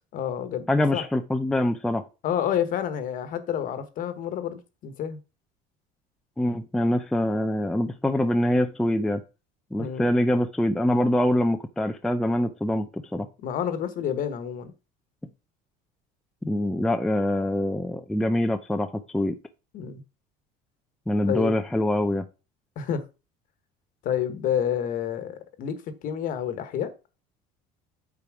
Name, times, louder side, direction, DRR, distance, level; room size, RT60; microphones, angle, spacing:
voice 1, 0.1-1.0 2.2-5.2 9.8-10.0 13.4-14.7 19.7-20.0 21.2-21.5 22.8-23.0 24.0-25.8 26.0-26.9, left 9 dB, 45° left, 11 dB, 1.3 m, -29 dB
voice 2, 0.7-2.0 6.4-9.2 9.7-13.3 16.4-18.9 19.1-19.3 21.1-22.2, left 1 dB, 5° left, 6 dB, 0.4 m, -24 dB
8.7 x 4.5 x 4.8 m, 0.30 s
cardioid pair, 150°, 19 cm